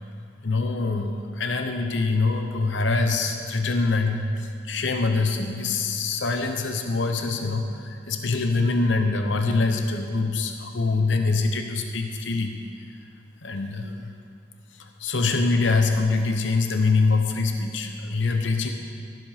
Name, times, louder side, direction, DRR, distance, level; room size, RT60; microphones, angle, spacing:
voice 1, 0.4-12.5 13.4-14.1 14.7-18.7, left 3 dB, 70° left, 5 dB, 0.8 m, -24 dB
15.5 x 7.8 x 5.7 m, 2.3 s
head